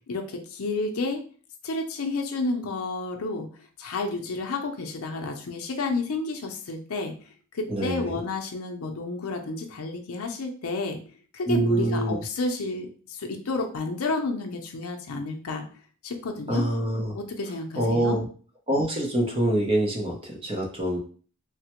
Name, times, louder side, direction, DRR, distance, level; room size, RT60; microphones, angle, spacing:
voice 1, 0.1-1.2 1.6-3.5 3.8-7.1 7.5-11.0 11.3-15.6 16.0-16.6 17.1-18.2, left 3 dB, 80° left, 3 dB, 0.5 m, -30 dB
voice 2, 7.7-8.2 11.5-12.2 16.5-17.2 17.8-18.3 18.7-21.0, right 1 dB, 25° right, 0 dB, 0.6 m, -25 dB
3.2 x 2.1 x 2.9 m, 0.41 s
head